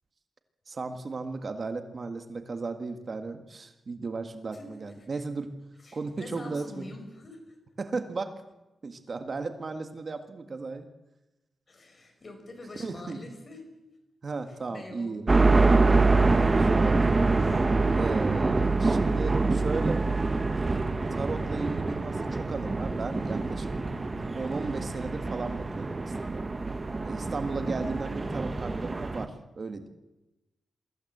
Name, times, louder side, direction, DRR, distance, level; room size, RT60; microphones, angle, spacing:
voice 1, 0.7-5.5 5.9-6.9 7.8-8.3 8.8-10.9 12.7-13.2 14.2-15.3 15.9-17.1 17.9-20.1 21.1-23.7 24.3-26.4 27.0-29.9, right 4 dB, 45° right, 7 dB, 1.8 m, -35 dB
voice 2, 4.5-5.1 5.8-7.6 11.7-13.6 14.7-15.2 18.6-18.9, left 2 dB, 40° left, 5 dB, 5.7 m, -45 dB
sound 1, 15.3-29.3, right 3 dB, 25° right, 1.5 m, -25 dB
23.5 x 15.5 x 8.1 m, 1.0 s
cardioid pair, 100°, 0 cm